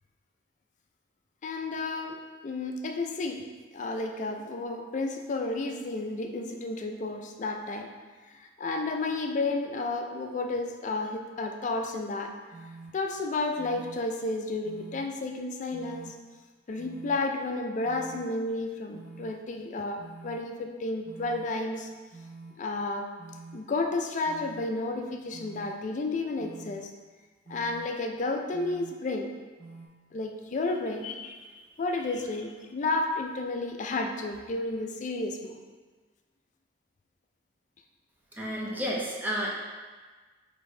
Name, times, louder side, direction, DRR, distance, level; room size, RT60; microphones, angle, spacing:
voice 1, 1.4-3.5 3.7-7.9 8.3-12.3 12.9-16.2 16.7-21.9 22.6-23.1 23.5-26.9 27.5-29.3 30.1-31.3 31.8-35.6, left 2 dB, 45° left, 4 dB, 0.4 m, -32 dB
sound 1, 12.5-12.9 13.6-14.0 14.6-15.0 15.7-16.1 16.8-17.2 17.8-18.3 18.9-19.3 20.0-20.4 21.0-21.5 22.1-22.5 23.2-23.6 24.3-24.7 25.3-25.7 26.4-26.8 27.5-27.9 28.5-28.9 29.6-29.9, right 3 dB, 75° right, 0.7 m, -46 dB
voice 2, 38.4-39.5, equal, 10° right, -4 dB, 0.5 m, -31 dB
4.9 x 2.7 x 3.2 m, 1.4 s
head